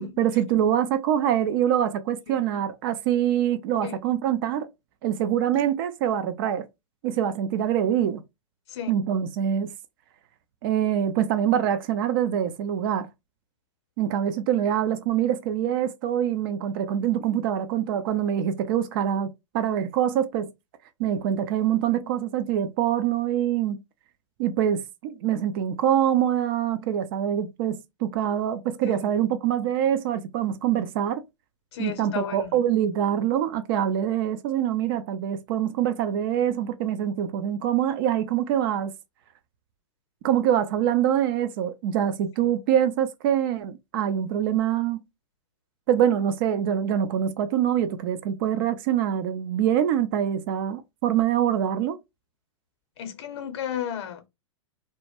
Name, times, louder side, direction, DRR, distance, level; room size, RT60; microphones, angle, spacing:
voice 1, 0.0-4.7 5.0-6.6 7.0-8.2 8.9-9.7 10.6-13.1 14.0-20.5 21.0-23.8 24.4-31.2 31.8-38.9 40.2-45.0 45.9-52.0, right 10 dB, 45° right, 0.4 m, -24 dB
voice 2, 31.7-32.6 53.0-54.2, left 9 dB, 55° left, 0.7 m, -33 dB
2.1 x 2.1 x 2.9 m
figure-of-eight pair, 105°, 16 cm